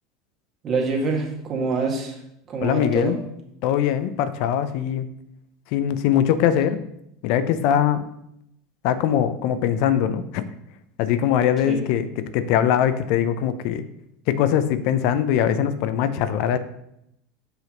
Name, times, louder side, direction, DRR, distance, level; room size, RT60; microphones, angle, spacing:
voice 1, 0.6-2.2 2.5-3.2 11.6-11.8, right 4 dB, 40° right, 1 dB, 1.9 m, -25 dB
voice 2, 2.6-3.2 3.6-5.1 5.7-6.8 7.2-8.0 8.8-10.5 11.0-13.9 14.3-16.6, left 9 dB, 60° left, 12 dB, 0.5 m, -21 dB
5.8 x 5.7 x 3.9 m, 0.77 s
hypercardioid pair, 80°, 0 cm